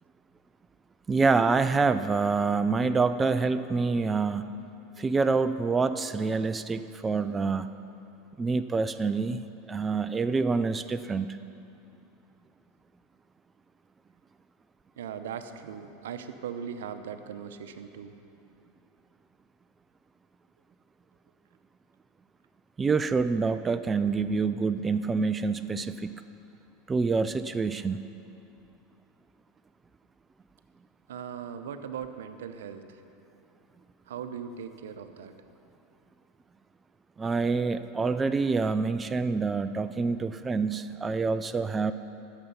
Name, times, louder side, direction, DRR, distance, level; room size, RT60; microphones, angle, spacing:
voice 1, 1.1-4.5 5.0-7.7 8.4-9.4 9.7-11.3 22.8-26.2 26.9-28.0 37.2-41.9, right 4 dB, 20° right, 11 dB, 0.3 m, -26 dB
voice 2, 15.0-18.2 31.1-33.0 34.1-35.4, right 7 dB, 85° right, 9 dB, 0.7 m, -39 dB
16.0 x 6.9 x 5.5 m, 2.7 s
hypercardioid pair, 110°, 0 cm